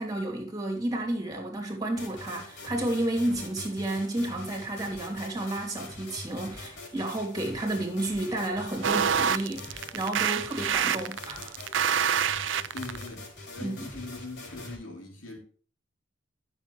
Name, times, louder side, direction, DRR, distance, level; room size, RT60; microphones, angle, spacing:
voice 1, 0.0-11.5 13.6-13.9, right 1 dB, 20° right, 2.7 m, -31 dB
sound 1, 2.0-14.8, left 2 dB, 60° left, 4.1 m, -44 dB
sound 2, 8.8-13.0, right 8 dB, 65° right, 0.5 m, -26 dB
voice 2, 12.7-13.3 13.5-15.4, left 3 dB, 75° left, 3.3 m, -41 dB
12.5 x 6.8 x 3.2 m
head